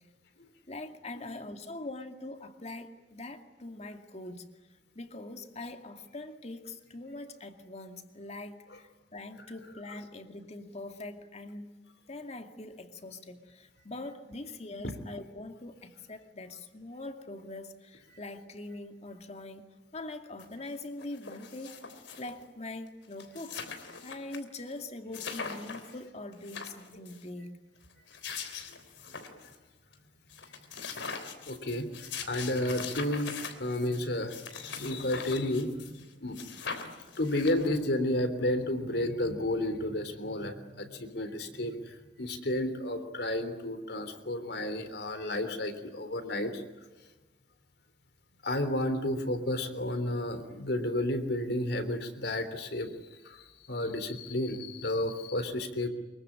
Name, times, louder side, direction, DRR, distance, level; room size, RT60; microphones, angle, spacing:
voice 1, 0.7-4.5 5.0-11.8 12.1-19.7 19.9-21.8 22.2-27.5, left 2 dB, 35° left, 6 dB, 2.3 m, -43 dB
sound 1, 20.4-20.5 20.8-22.4 22.9-23.0 23.1-24.4 24.7-24.8 25.1-25.9 26.3-27.2 27.9-29.6 29.9-30.0 30.3-36.1 36.3-37.9, left 5 dB, 85° left, 3.4 m, -41 dB
voice 2, 31.5-33.3 33.6-35.7 36.2-36.4 37.2-46.6 48.4-52.9 53.2-53.4 53.7-55.9, left 1 dB, 65° left, 9 dB, 3.4 m, -32 dB
24.5 x 23.0 x 9.9 m, 1.2 s
head